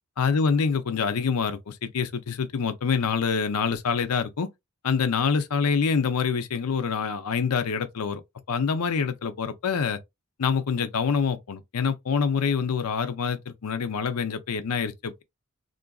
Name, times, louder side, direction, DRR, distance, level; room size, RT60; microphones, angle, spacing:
voice 1, 0.2-4.5 4.8-8.2 8.5-10.0 10.4-15.2, left 6 dB, 85° left, 0.5 m, -26 dB
3.7 x 2.5 x 2.3 m
head